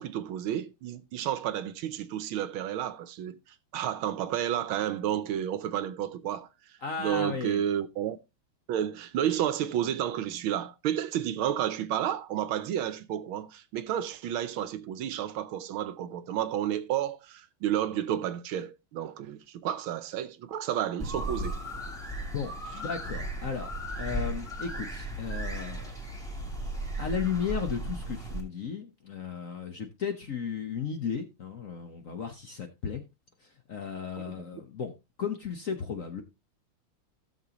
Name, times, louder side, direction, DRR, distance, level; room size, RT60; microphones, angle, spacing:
voice 1, 0.0-8.2 8.7-21.6 34.2-34.3, right 10 dB, 75° right, 1.5 m, -31 dB
voice 2, 6.8-7.6 22.3-23.7 24.0-25.9 27.0-33.0 33.7-34.9 35.2-36.2, left 6 dB, 50° left, 1.1 m, -35 dB
sound 1, 21.0-28.4, right 1 dB, ahead, 2.8 m, -35 dB
16.5 x 6.7 x 2.9 m
omnidirectional pair, 2.4 m